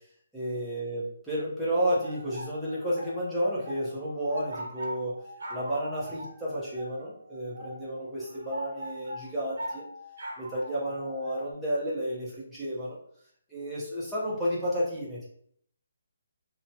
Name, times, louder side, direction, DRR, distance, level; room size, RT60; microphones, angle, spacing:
voice 1, 0.3-5.2 5.5-9.8 10.4-13.0 13.5-15.3, equal, ahead, -11 dB, 0.8 m, -31 dB
sound 1, 2.0-11.5, equal, 65° right, 0.8 m, -42 dB
2.7 x 2.2 x 2.7 m, 0.65 s
hypercardioid pair, 160°, 0 cm